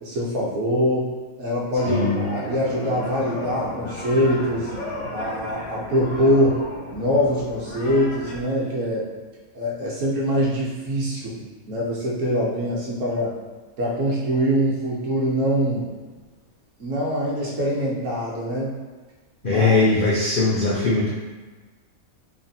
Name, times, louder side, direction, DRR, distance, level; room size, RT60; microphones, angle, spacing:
voice 1, 0.0-4.7 5.1-6.6 6.9-9.1 9.5-13.3 13.8-15.9 16.8-18.7 19.4-19.8, equal, 65° right, -5 dB, 1.1 m, -23 dB
sound 1, 1.7-8.4, left 2 dB, 90° left, 1.1 m, -34 dB
voice 2, 1.9-2.2 19.4-21.1, left 3 dB, 70° left, -6 dB, 0.5 m, -20 dB
3.2 x 2.1 x 2.6 m, 1.3 s
omnidirectional pair, 1.5 m